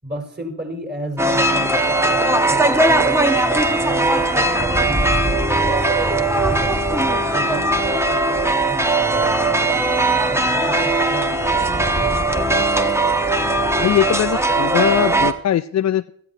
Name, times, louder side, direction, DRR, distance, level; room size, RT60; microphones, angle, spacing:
voice 1, 0.0-9.4 10.3-12.7, equal, 20° right, 3 dB, 5.5 m, -34 dB
sound 1, 1.2-15.3, right 2 dB, 5° right, 1.3 m, -19 dB
voice 2, 13.8-16.1, left 11 dB, 40° left, 11 dB, 0.5 m, -20 dB
17.0 x 13.5 x 2.9 m, 0.67 s
hypercardioid pair, 40°, 46 cm